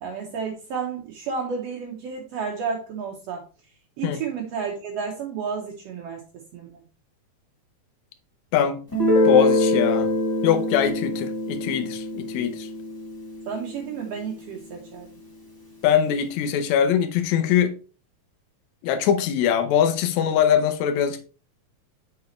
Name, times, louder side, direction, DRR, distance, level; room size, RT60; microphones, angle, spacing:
voice 1, 0.0-3.5 4.0-6.8 13.5-15.1, right 6 dB, 80° right, 1.4 m, -31 dB
voice 2, 8.5-8.8 9.2-10.1 10.4-12.7 15.8-17.8 18.8-21.2, left 9 dB, 75° left, 1.8 m, -22 dB
Guitar, 8.9-14.4, left 2 dB, 15° left, 0.6 m, -24 dB
6.7 x 5.0 x 3.1 m
omnidirectional pair, 4.0 m